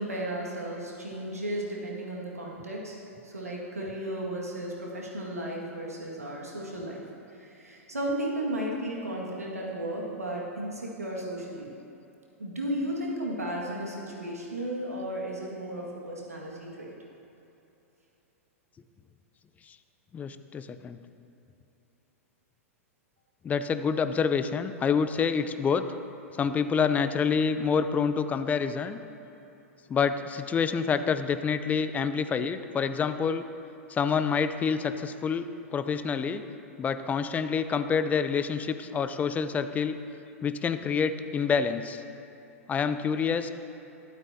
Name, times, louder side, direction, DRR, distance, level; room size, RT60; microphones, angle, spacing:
voice 1, 0.0-3.0 3.2-7.0 7.4-11.7 12.4-16.9, right 1 dB, 85° right, -3 dB, 1.8 m, -34 dB
voice 2, 20.1-21.0 23.4-25.9 26.4-29.0 29.9-33.4 33.9-35.5 35.7-36.4 36.8-39.9 40.4-42.0 42.7-43.5, left 6 dB, 20° left, 11 dB, 0.5 m, -27 dB
12.5 x 12.0 x 2.8 m, 2.9 s
figure-of-eight pair, 100°, 8 cm